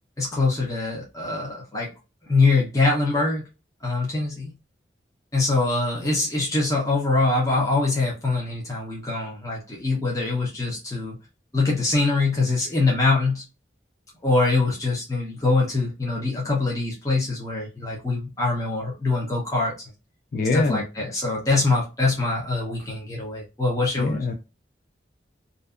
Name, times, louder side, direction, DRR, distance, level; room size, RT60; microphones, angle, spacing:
voice 1, 0.2-1.9 2.3-3.4 3.8-4.5 5.3-11.2 11.5-13.4 14.2-19.7 20.5-24.2, left 3 dB, 20° left, 0.7 m, -23 dB
voice 2, 20.3-20.8 24.0-24.3, left 3 dB, 50° left, 0.4 m, -23 dB
2.6 x 2.3 x 2.3 m
head